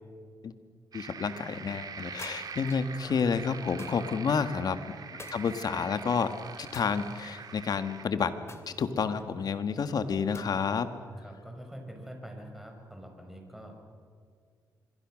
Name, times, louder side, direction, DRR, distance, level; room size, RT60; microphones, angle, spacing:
voice 1, 0.9-4.8 5.3-6.3 6.6-8.3 8.7-10.9, left 6 dB, 60° left, 10 dB, 1.6 m, -30 dB
sound 1, 0.9-8.1, right 6 dB, 60° right, 2.1 m, -44 dB
sound 2, 2.2-2.9 3.8-4.2 5.2-6.0 6.7-7.5 8.5-9.4 10.3-10.9, left 3 dB, 35° left, 2.4 m, -49 dB
voice 2, 3.0-3.5 11.2-13.8, equal, ahead, 2 dB, 5.6 m, -45 dB
26.0 x 22.0 x 6.4 m, 2.1 s
cardioid pair, 75°, 8 cm